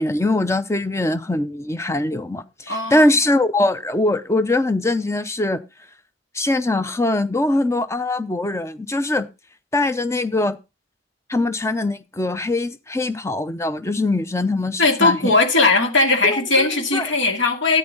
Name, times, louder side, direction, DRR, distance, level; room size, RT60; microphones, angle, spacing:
voice 1, 0.0-5.6 6.3-9.3 9.7-10.6 11.3-15.3 16.2-16.7 16.9-17.0, left 2 dB, 15° left, 0.6 m, -22 dB
voice 2, 2.7-3.2 14.8-17.8, left 3 dB, 70° left, 2.4 m, -18 dB
12.5 x 8.9 x 3.9 m
head